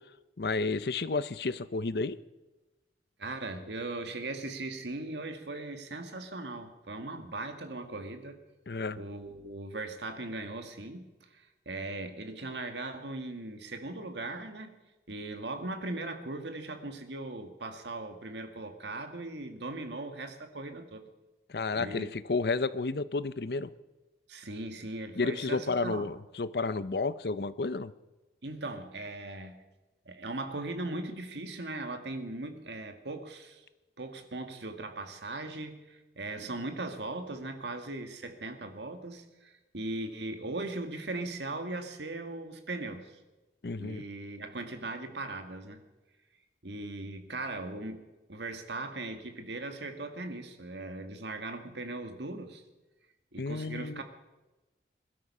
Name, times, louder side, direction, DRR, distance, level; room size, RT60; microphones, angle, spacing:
voice 1, 0.4-2.2 8.7-9.0 21.5-23.7 25.2-27.9 43.6-44.0 53.4-54.0, left 3 dB, 60° left, 15 dB, 0.6 m, -31 dB
voice 2, 3.2-8.4 9.0-14.7 15.1-21.0 21.7-22.1 24.3-26.1 28.4-29.6 30.1-33.7 34.0-43.2 43.8-45.8 46.6-48.0 48.3-52.6 53.3-54.0, right 2 dB, 80° right, 6 dB, 1.8 m, -39 dB
21.5 x 12.5 x 5.5 m, 1.1 s
head